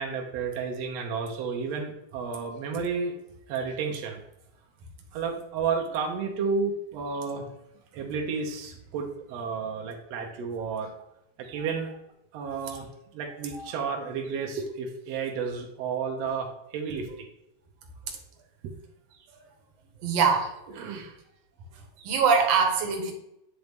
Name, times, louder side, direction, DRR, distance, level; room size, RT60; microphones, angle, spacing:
voice 1, 0.0-3.1 3.5-4.2 5.1-7.5 7.9-10.9 11.4-11.9 12.3-17.1 19.2-19.3 20.4-21.2 22.0-22.5, right 5 dB, 90° right, 2 dB, 1.4 m, -32 dB
voice 2, 20.0-20.5 22.0-23.1, right 5 dB, 65° right, 3 dB, 1.7 m, -23 dB
9.3 x 4.1 x 3.5 m, 0.84 s
omnidirectional pair, 4.0 m